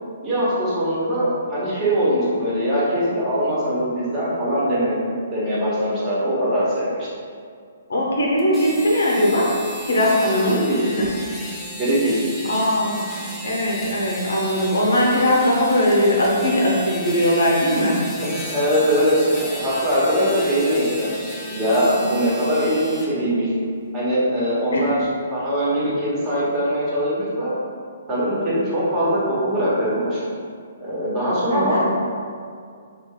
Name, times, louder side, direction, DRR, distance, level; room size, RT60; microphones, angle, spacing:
voice 1, 0.2-5.0 5.3-7.1 10.4-10.8 11.8-12.1 18.2-21.1 21.5-22.8 23.1-23.5 23.9-25.0 25.3-27.5 28.1-30.2 30.8-31.8, equal, 20° right, -9 dB, 1.1 m, -21 dB
voice 2, 7.9-9.6 9.8-11.1 12.5-17.9 24.7-24.9 31.5-31.8, equal, 80° left, -3 dB, 0.8 m, -20 dB
sound 1, 8.4-23.1, equal, 5° left, 0.5 m, -35 dB
3.1 x 2.4 x 3.7 m, 2.2 s
hypercardioid pair, 150°, 0 cm